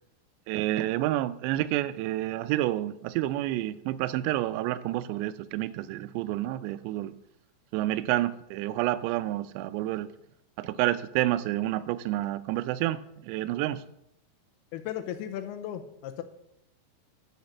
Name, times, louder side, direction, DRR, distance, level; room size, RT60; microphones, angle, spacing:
voice 1, 0.5-7.1 7.7-10.1 10.6-13.8, right 15 dB, 90° right, 13 dB, 2.8 m, -29 dB
voice 2, 14.7-16.2, left 10 dB, 80° left, 8 dB, 2.4 m, -36 dB
10.5 x 5.1 x 7.0 m, 0.77 s
omnidirectional pair, 5.0 m